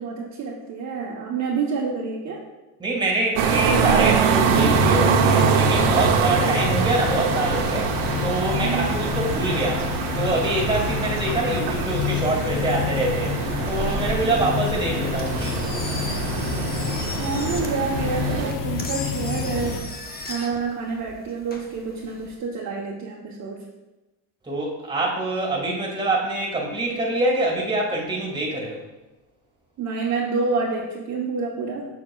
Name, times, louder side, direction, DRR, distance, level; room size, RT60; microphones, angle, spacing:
voice 1, 0.0-2.4 8.5-9.1 14.2-14.5 17.2-19.9 20.2-23.6 29.8-31.9, right 4 dB, 40° right, -3 dB, 0.9 m, -28 dB
voice 2, 2.8-7.9 8.2-13.3 13.6-15.8 24.4-28.8, right 2 dB, 10° right, -1 dB, 1.7 m, -25 dB
sound 1, 3.4-18.5, right 6 dB, 70° right, 0.8 m, -24 dB
sound 2, 4.4-19.8, left 5 dB, 50° left, 0.9 m, -28 dB
Engine, 15.0-22.4, left 3 dB, 20° left, 0.9 m, -37 dB
7.0 x 6.3 x 2.3 m, 1.1 s
supercardioid pair, 105°, 42 cm